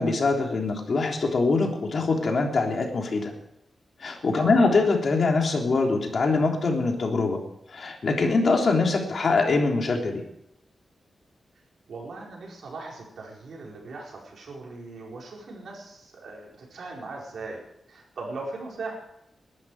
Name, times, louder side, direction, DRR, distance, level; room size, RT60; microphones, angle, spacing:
voice 1, 0.0-3.3 4.0-7.4 7.7-10.2, left 3 dB, 55° left, 1 dB, 3.4 m, -23 dB
voice 2, 11.9-19.0, right 3 dB, 80° right, -2 dB, 4.7 m, -39 dB
21.0 x 12.0 x 4.9 m, 0.81 s
wide cardioid pair, 125°, 0 cm